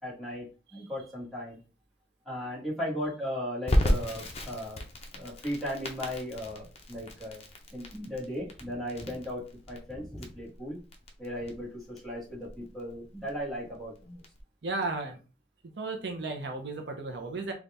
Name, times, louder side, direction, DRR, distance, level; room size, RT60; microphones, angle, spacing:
voice 1, 0.0-1.6 2.2-4.8 5.1-7.4 7.7-10.8 11.2-14.2, equal, ahead, -6 dB, 1.4 m, -37 dB
Crackle, 3.7-14.4, equal, 35° left, 0.6 m, -34 dB
voice 2, 14.6-15.2 15.8-17.5, right 3 dB, 65° right, 4 dB, 0.6 m, -34 dB
4.0 x 2.4 x 3.4 m, 0.33 s
head